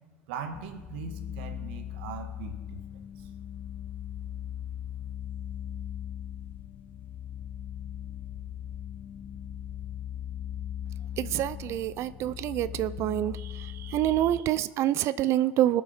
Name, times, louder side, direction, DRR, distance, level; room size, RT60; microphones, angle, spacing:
voice 1, 0.3-3.3, right 6 dB, 75° right, 7 dB, 1.5 m, -40 dB
sound 1, 0.5-14.4, left 10 dB, 40° left, 0.7 m, -39 dB
voice 2, 11.2-15.8, right 13 dB, 55° right, 17 dB, 0.4 m, -27 dB
20.0 x 7.3 x 4.3 m, 1.3 s
hypercardioid pair, 90°, 6 cm